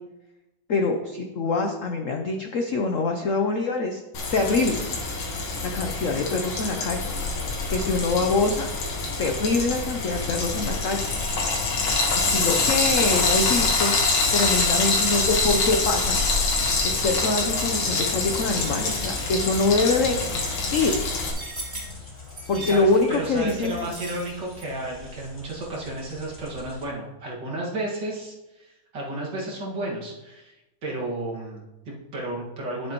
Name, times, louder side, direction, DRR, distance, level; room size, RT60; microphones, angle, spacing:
voice 1, 0.7-4.0 4.3-4.8 5.6-7.0 7.7-8.7 9.2-11.0 12.3-14.0 14.3-16.2 16.8-20.9 22.5-23.9, left 3 dB, 65° left, 4 dB, 0.8 m, -24 dB
Frying (food), 4.1-21.3, left 3 dB, 90° left, 2.4 m, -25 dB
sound 1, 7.0-26.9, left 2 dB, 30° left, 2.6 m, -38 dB
sound 2, 18.3-24.7, right 1 dB, 30° right, 3.2 m, -40 dB
voice 2, 22.5-30.5 30.8-32.9, right 2 dB, 60° right, -4 dB, 2.5 m, -33 dB
10.5 x 7.9 x 3.0 m, 1.0 s
omnidirectional pair, 2.2 m